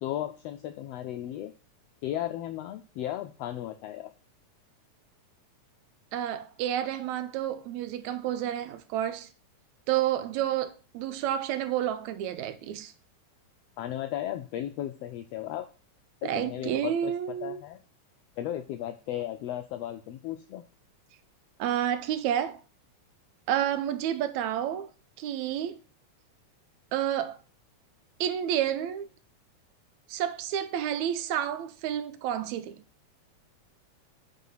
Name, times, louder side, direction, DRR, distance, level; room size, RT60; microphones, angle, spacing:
voice 1, 0.0-1.5 2.0-4.1 13.8-15.7 16.2-17.1 17.4-17.8 18.4-20.7, left 12 dB, 85° left, 1.4 m, -35 dB
voice 2, 6.1-9.3 9.9-12.9 16.2-17.6 21.6-22.6 23.5-24.9 25.2-25.8 26.9-27.4 28.2-29.1 30.1-32.8, right 10 dB, 80° right, 2.0 m, -30 dB
8.4 x 4.1 x 5.6 m
omnidirectional pair, 3.4 m